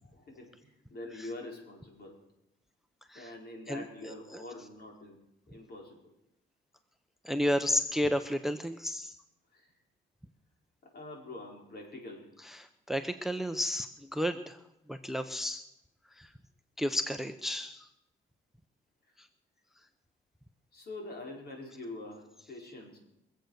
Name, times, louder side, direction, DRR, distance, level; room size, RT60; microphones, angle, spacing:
voice 1, 0.0-2.2 3.1-5.2 5.5-6.0 9.5-9.7 10.9-12.3 20.7-23.0, left 2 dB, 55° left, 0 dB, 5.0 m, -45 dB
voice 2, 7.2-9.2 12.5-14.6 14.9-15.6 16.1-16.3 16.8-17.9 19.2-19.3, left 1 dB, ahead, 10 dB, 0.8 m, -32 dB
23.5 x 7.9 x 6.6 m, 0.84 s
cardioid pair, 90°, 20 cm